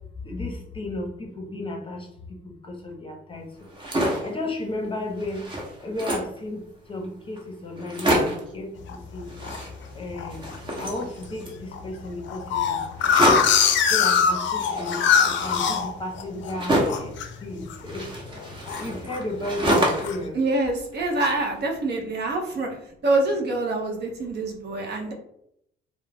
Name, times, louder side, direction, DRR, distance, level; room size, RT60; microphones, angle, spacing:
voice 1, 0.2-2.1 2.7-3.4 4.2-5.4 5.8-6.6 6.9-8.7 9.1-9.3 9.9-10.4 10.8-12.8 13.9-17.1 17.4-18.0 18.8-20.4, left 2 dB, 25° left, 1 dB, 0.7 m, -33 dB
sound 1, 3.6-4.4 4.8-4.9 5.2-6.4 7.0-7.1 7.4-7.5 7.8-8.5 9.3-10.0 10.3-11.6 13.0-13.7 14.6-17.1 17.9-20.2 20.5-21.5, equal, 25° right, 0.8 m, -27 dB
sound 2, 8.9-9.6 10.2-10.6 11.0-11.1 11.3-11.4 11.7-16.5 16.9-17.3 17.6-17.9 18.3-19.2 19.7-20.2, left 7 dB, 70° left, 0.4 m, -22 dB
voice 2, 20.3-22.8 23.0-25.1, right 2 dB, 55° right, 2 dB, 0.6 m, -25 dB
2.3 x 2.1 x 3.3 m, 0.76 s
cardioid pair, 90°, 20 cm